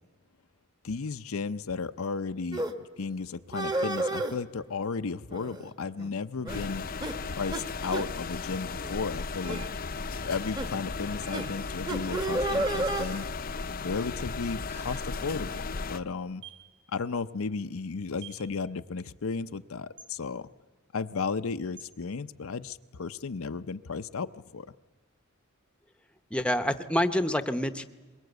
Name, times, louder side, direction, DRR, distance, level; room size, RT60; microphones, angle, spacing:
voice 1, 0.8-2.6 3.0-6.8 7.3-9.7 10.2-13.3 13.8-16.4 16.9-20.5 20.9-24.7, left 4 dB, 80° left, 11 dB, 0.6 m, -34 dB
sound 1, 2.5-2.7 3.5-4.4 5.3-5.7 6.0-6.1 6.4-6.7 7.0-7.1 7.5-7.6 7.9-8.1 8.7-8.9 9.4-9.6 10.6-10.7 11.3-11.4 11.9-13.0, right 2 dB, 20° right, 1.2 m, -31 dB
sound 2, 6.5-16.0, left 4 dB, 45° left, 0.7 m, -36 dB
sound 3, 9.4-10.1 11.2-11.9 12.9-13.3 14.7-15.1 16.4-16.7 18.2-18.5 20.0-20.2 21.8-22.0, right 5 dB, 35° right, 2.6 m, -48 dB
voice 2, 26.3-27.8, left 1 dB, 5° left, 10 dB, 0.8 m, -27 dB
23.5 x 22.0 x 8.1 m, 1.3 s
head